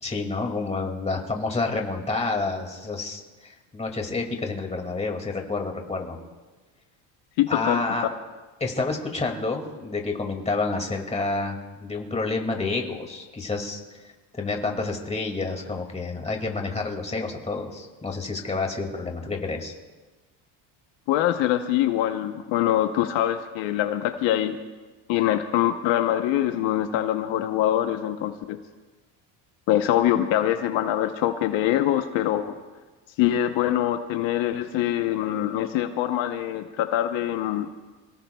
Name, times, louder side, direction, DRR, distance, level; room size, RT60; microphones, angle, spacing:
voice 1, 0.0-6.2 7.5-8.1 8.6-13.8 14.3-19.7, left 3 dB, 15° left, 2 dB, 2.2 m, -29 dB
voice 2, 7.4-7.8 21.1-24.6 25.1-28.6 29.7-32.4 33.2-37.7, left 12 dB, 70° left, 7 dB, 1.0 m, -24 dB
27.5 x 17.5 x 2.3 m, 1.3 s
cardioid pair, 130°, 47 cm